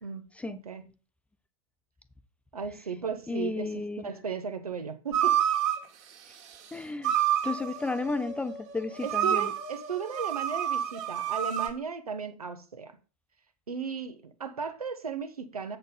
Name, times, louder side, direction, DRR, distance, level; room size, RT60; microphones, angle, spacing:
voice 1, 0.0-0.8 2.5-5.4 9.0-13.0 13.7-15.8, right 6 dB, 80° right, 1.1 m, -36 dB
voice 2, 3.3-4.1 6.7-7.1 7.4-9.5, left 3 dB, 5° left, 0.4 m, -33 dB
sound 1, 5.1-5.8 7.0-11.7, right 10 dB, 40° right, 1.7 m, -29 dB
7.9 x 6.6 x 4.0 m
figure-of-eight pair, 90°, 19 cm